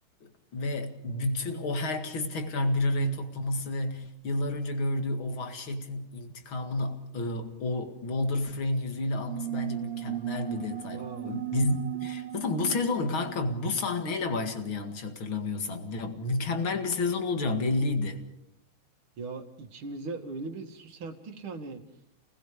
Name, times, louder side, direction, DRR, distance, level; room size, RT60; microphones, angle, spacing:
voice 1, 0.2-18.3, left 2 dB, 65° left, 2.9 m, -30 dB
sound 1, 9.3-14.5, right 14 dB, 45° right, 0.8 m, -36 dB
voice 2, 10.9-11.3 19.2-21.8, right 3 dB, 70° right, 2.8 m, -39 dB
30.0 x 20.0 x 5.1 m
omnidirectional pair, 2.4 m